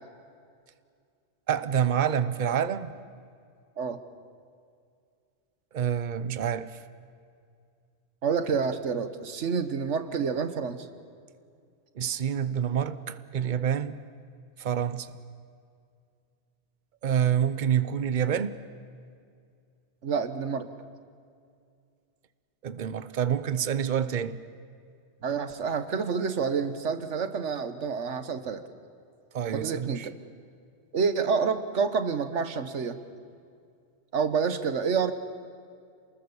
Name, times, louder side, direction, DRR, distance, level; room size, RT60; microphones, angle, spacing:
voice 1, 1.5-3.0 5.7-6.8 12.0-14.0 14.6-15.1 17.0-18.6 22.6-24.4 29.3-30.1, right 8 dB, 45° right, 0.9 m, -27 dB
voice 2, 8.2-10.9 20.0-20.7 25.2-28.6 29.5-30.1 30.9-33.0 34.1-35.1, right 5 dB, 80° right, 1.5 m, -28 dB
28.0 x 20.5 x 7.1 m
omnidirectional pair, 1.2 m